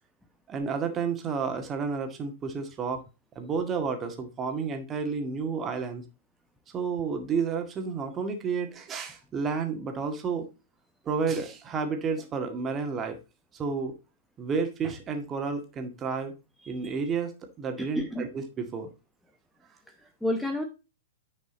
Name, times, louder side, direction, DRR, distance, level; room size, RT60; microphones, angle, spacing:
voice 1, 0.5-3.0 3.4-6.0 6.7-10.5 11.1-13.2 13.5-13.9 14.4-16.3 16.7-18.9, right 5 dB, 25° right, 5 dB, 2.0 m, -31 dB
voice 2, 16.6-16.9 17.8-18.2 20.0-20.6, left 1 dB, ahead, 5 dB, 1.0 m, -31 dB
9.8 x 5.4 x 4.0 m, 0.29 s
figure-of-eight pair, 105°, 0 cm